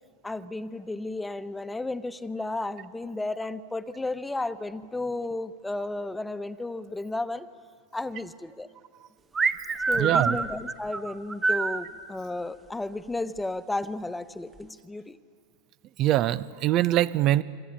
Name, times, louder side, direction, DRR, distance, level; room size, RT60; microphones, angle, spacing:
voice 1, 0.2-7.5 7.9-8.7 9.9-15.2, left 2 dB, 10° left, 12 dB, 1.2 m, -33 dB
sound 1, 9.3-11.8, right 4 dB, 20° right, 1.4 m, -26 dB
voice 2, 9.9-10.4 16.0-17.4, right 14 dB, 45° right, 16 dB, 0.8 m, -23 dB
27.0 x 24.5 x 8.9 m, 2.2 s
hypercardioid pair, 95°, 0 cm